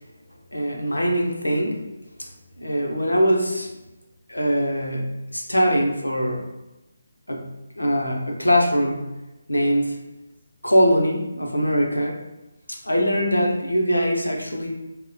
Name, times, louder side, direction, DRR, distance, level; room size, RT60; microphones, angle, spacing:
voice 1, 0.5-1.8 2.2-2.3 2.6-3.7 4.3-6.4 7.3-7.4 7.8-9.0 9.5-10.0 10.6-12.2 12.7-14.7, equal, 90° left, 1 dB, 0.5 m, -22 dB
2.8 x 2.1 x 2.5 m, 1.0 s
figure-of-eight pair, 150°, 0 cm